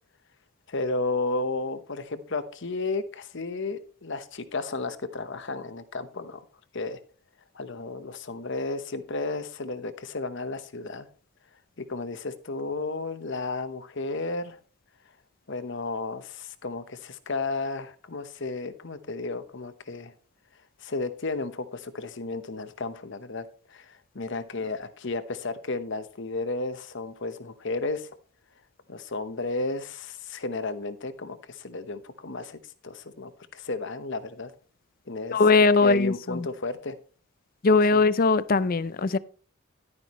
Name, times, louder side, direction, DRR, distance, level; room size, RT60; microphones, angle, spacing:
voice 1, 0.7-6.5 6.7-7.0 7.5-11.1 11.8-14.6 15.5-20.1 20.8-28.1 28.9-32.6 32.8-34.5 35.1-35.4 35.8-37.0 37.9-38.0, left 3 dB, 60° left, 1.0 m, -33 dB
voice 2, 35.3-36.5 37.6-39.2, left 3 dB, 40° left, 0.5 m, -20 dB
11.5 x 9.7 x 3.1 m
head